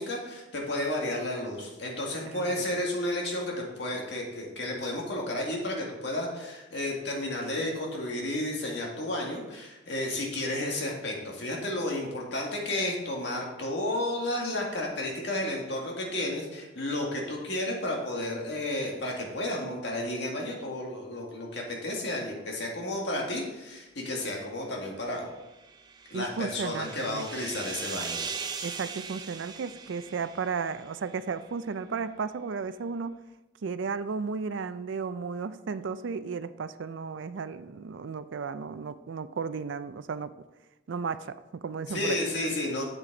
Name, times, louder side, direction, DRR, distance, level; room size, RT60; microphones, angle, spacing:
voice 1, 0.0-25.3 26.1-28.2 41.9-42.8, left 1 dB, 65° left, -1 dB, 1.9 m, -32 dB
voice 2, 2.3-2.7 26.1-27.3 28.6-33.1 33.6-40.3 40.9-42.2, right 5 dB, 75° right, 13 dB, 0.4 m, -34 dB
sound 1, 25.4-31.0, right 5 dB, 20° right, 0.5 m, -40 dB
8.1 x 7.4 x 3.9 m, 1.0 s
head